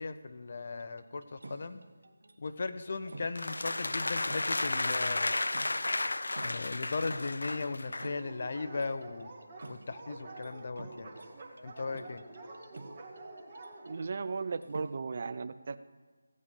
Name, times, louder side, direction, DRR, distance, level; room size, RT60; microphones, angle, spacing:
voice 1, 0.0-1.8 2.4-5.4 6.4-9.3 9.7-11.1 11.6-12.2, left 3 dB, 50° left, 11 dB, 0.9 m, -37 dB
sound 1, 0.8-14.1 14.4-15.0, right 2 dB, 70° right, 1.0 m, -52 dB
sound 2, 3.3-8.2, left 2 dB, 75° left, 0.4 m, -33 dB
Dog, 8.1-14.0, right 2 dB, 25° right, 1.9 m, -48 dB
voice 2, 13.8-15.8, right 4 dB, 45° right, 13 dB, 0.6 m, -36 dB
15.5 x 8.7 x 7.0 m, 1.4 s
figure-of-eight pair, 160°, 0 cm